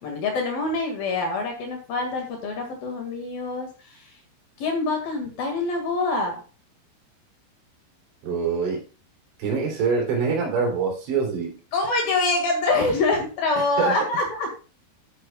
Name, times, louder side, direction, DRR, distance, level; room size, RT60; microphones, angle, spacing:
voice 1, 0.0-4.1 4.6-6.4 11.7-14.5, left 3 dB, 55° left, 2 dB, 3.3 m, -25 dB
voice 2, 8.2-8.8 9.4-11.6 13.8-13.9, right 5 dB, 65° right, 0 dB, 5.4 m, -24 dB
12.0 x 10.0 x 2.4 m, 0.34 s
omnidirectional pair, 5.8 m